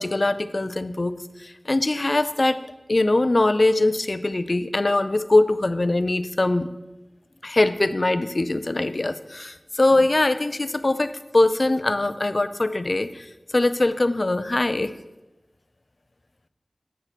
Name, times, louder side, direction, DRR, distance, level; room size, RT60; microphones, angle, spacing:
voice 1, 0.0-2.6 2.9-6.7 7.4-13.2 13.5-14.9, left 2 dB, 50° left, 12 dB, 0.4 m, -22 dB
7.9 x 7.5 x 4.1 m, 1.0 s
wide cardioid pair, 50°, 0 cm